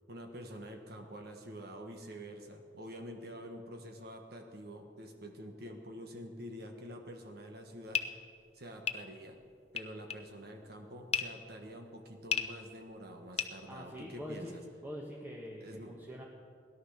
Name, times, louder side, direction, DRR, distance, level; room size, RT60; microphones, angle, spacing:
voice 1, 0.1-8.2 8.5-9.4 9.7-14.6 15.5-16.1, equal, 60° right, 4 dB, 1.5 m, -47 dB
sound 1, 7.6-14.3, left 7 dB, 35° left, 0.7 m, -38 dB
voice 2, 13.7-14.5 14.8-16.2, equal, 10° right, -3 dB, 1.4 m, -44 dB
17.0 x 11.0 x 6.6 m, 2.3 s
head